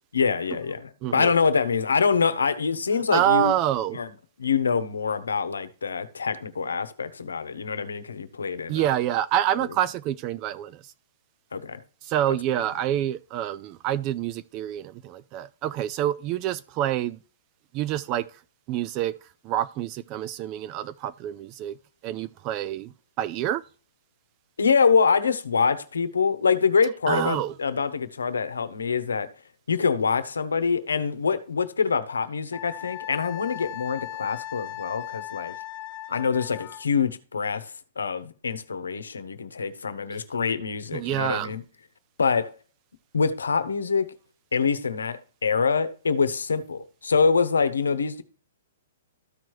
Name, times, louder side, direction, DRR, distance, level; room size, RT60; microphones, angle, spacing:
voice 1, 0.1-3.5 3.9-4.1 4.4-8.8 9.6-9.7 11.5-11.8 24.6-29.3 29.7-35.5 36.1-41.6 42.2-42.5 43.1-44.1 44.5-48.2, left 5 dB, 90° left, 0.9 m, -25 dB
voice 2, 3.1-4.0 8.7-10.9 12.0-17.2 17.7-18.3 18.7-19.1 19.4-21.7 22.0-23.6 27.1-27.5 40.9-41.5, right 12 dB, 35° right, 0.3 m, -27 dB
Wind instrument woodwind instrument, 32.5-36.9, left 14 dB, 35° left, 1.1 m, -38 dB
13.5 x 4.5 x 3.1 m
hypercardioid pair, 130°, 0 cm